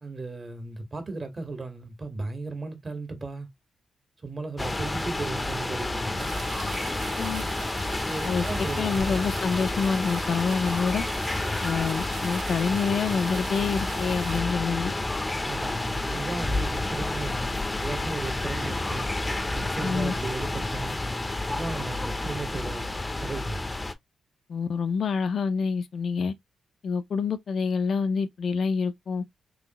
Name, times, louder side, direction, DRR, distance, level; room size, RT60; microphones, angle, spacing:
voice 1, 0.0-3.5 4.2-6.3 8.1-9.1 15.4-17.5 17.8-19.1 19.5-21.0 21.5-23.7, right 3 dB, 35° right, 1.8 m, -36 dB
sound 1, 4.6-23.9, left 2 dB, 15° left, 0.8 m, -30 dB
sound 2, 6.2-14.4, right 8 dB, 80° right, 0.4 m, -42 dB
voice 2, 8.8-11.0 11.6-14.9 19.8-20.1 24.5-26.3 26.8-29.2, left 5 dB, 60° left, 0.7 m, -27 dB
3.9 x 3.3 x 3.0 m
cardioid pair, 75°, 0 cm